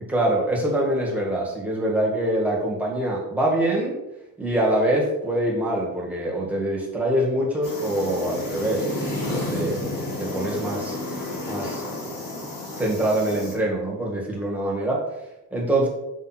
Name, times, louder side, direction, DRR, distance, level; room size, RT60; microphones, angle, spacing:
voice 1, 0.1-4.0 4.4-8.9 9.3-11.0 11.5-11.8 12.8-15.0 15.5-15.9, right 1 dB, 5° right, -3 dB, 1.8 m, -24 dB
sound 1, 7.6-13.5, left 1 dB, 80° left, 2.3 m, -31 dB
6.1 x 3.6 x 5.8 m, 0.94 s
wide cardioid pair, 150°, 33 cm